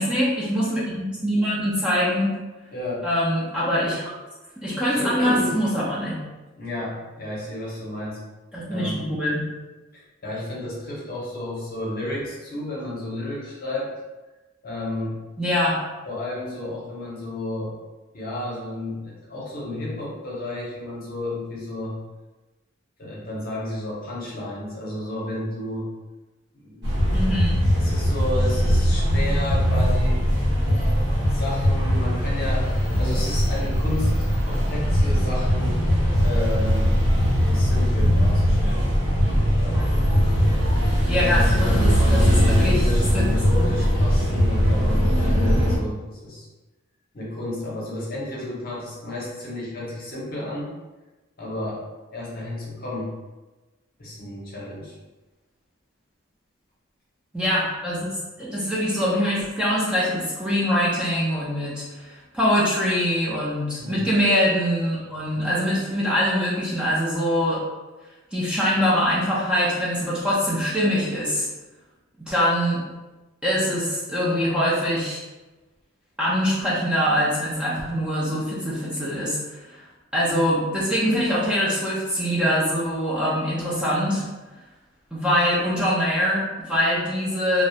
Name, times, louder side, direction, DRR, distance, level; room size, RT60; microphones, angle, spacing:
voice 1, 0.0-2.4 3.0-4.0 4.6-6.2 8.5-9.5 15.4-15.8 27.1-27.6 41.1-43.3 43.5-43.7 57.3-67.6 68.3-71.5 72.2-72.8 73.4-75.2 76.2-79.8 80.1-84.3 85.1-87.6, equal, 5° right, -8 dB, 0.5 m, -23 dB
voice 2, 2.7-3.1 4.9-5.6 6.6-8.2 8.7-9.1 9.9-13.9 14.6-15.2 16.1-17.7 18.1-22.0 23.0-25.9 26.5-27.3 27.8-30.3 31.3-34.1 34.4-35.9 36.2-37.0 37.5-38.9 39.6-39.9 41.1-46.5 47.1-50.7 51.4-51.8 52.1-53.1 54.0-54.9 63.8-64.1, left 1 dB, 50° left, -5 dB, 0.7 m, -32 dB
sound 1, 26.8-45.8, equal, 60° right, 0.8 m, -20 dB
2.3 x 2.0 x 2.7 m, 1.2 s
head